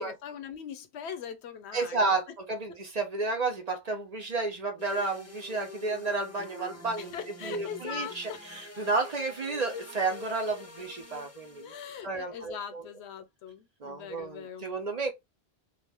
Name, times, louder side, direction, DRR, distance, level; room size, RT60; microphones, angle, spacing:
voice 1, 0.0-2.2 7.0-8.5 11.6-14.7, left 8 dB, 85° left, 0.9 m, -41 dB
voice 2, 1.7-7.1 7.4-11.7 12.0-12.8 13.8-15.1, right 3 dB, 45° right, 0.7 m, -32 dB
sound 1, 4.8-11.9, left 2 dB, 15° left, 0.6 m, -46 dB
2.5 x 2.1 x 3.3 m
omnidirectional pair, 1.1 m